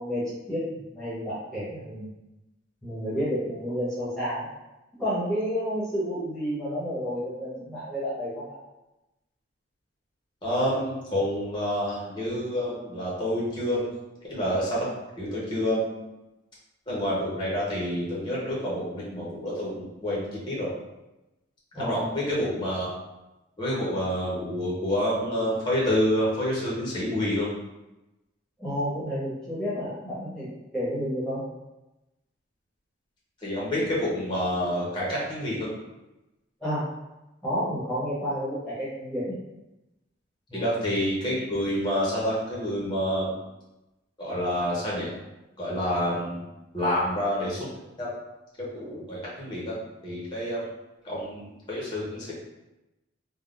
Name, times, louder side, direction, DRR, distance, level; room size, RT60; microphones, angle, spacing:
voice 1, 0.0-2.1 2.8-4.5 5.0-8.5 21.7-22.1 28.6-31.4 36.6-36.9 37.4-39.3 40.5-40.7, equal, 5° left, -12 dB, 1.1 m, -30 dB
voice 2, 10.4-13.8 14.3-14.9 15.2-16.0 16.9-20.7 21.7-23.0 23.6-27.5 33.4-35.7 40.5-43.3 44.2-45.1 45.6-46.4 46.7-47.7 48.0-48.2 48.6-49.7 50.0-50.6 51.0-51.4 51.7-52.3, equal, 25° left, -6 dB, 0.8 m, -28 dB
3.5 x 2.2 x 2.4 m, 0.98 s
head